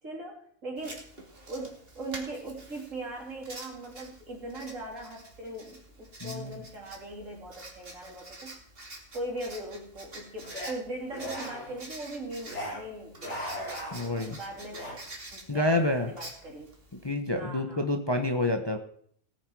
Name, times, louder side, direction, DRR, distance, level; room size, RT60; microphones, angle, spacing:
voice 1, 0.0-1.1 1.5-8.6 9.1-13.4 14.2-15.0 15.3-16.7 17.3-17.9, right 1 dB, 65° right, -1 dB, 3.8 m, -40 dB
Writing, 0.8-17.1, right 2 dB, 40° right, 2.7 m, -47 dB
voice 2, 6.2-6.6 13.9-14.4 15.5-16.1 17.0-18.8, left 1 dB, 20° left, 5 dB, 0.9 m, -28 dB
sound 1, 10.4-10.7 11.1-11.8 12.4-12.8 13.1-14.2 14.7-15.0, equal, 55° left, 5.4 m, -38 dB
18.0 x 8.9 x 4.8 m, 0.63 s
omnidirectional pair, 1.4 m